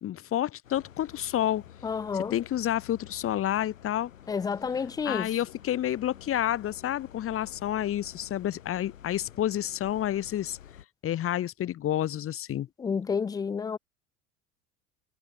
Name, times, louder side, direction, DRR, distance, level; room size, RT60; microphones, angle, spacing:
voice 1, 0.0-1.6 2.1-4.1 4.7-10.6 11.0-12.7, left 12 dB, 35° left, 1.9 m, -29 dB
sound 1, 0.6-10.9, left 10 dB, 75° left, 2.0 m, -50 dB
voice 2, 1.8-2.3 4.3-5.3 12.8-13.8, left 6 dB, 10° left, 0.4 m, -30 dB
figure-of-eight pair, 75°, 40 cm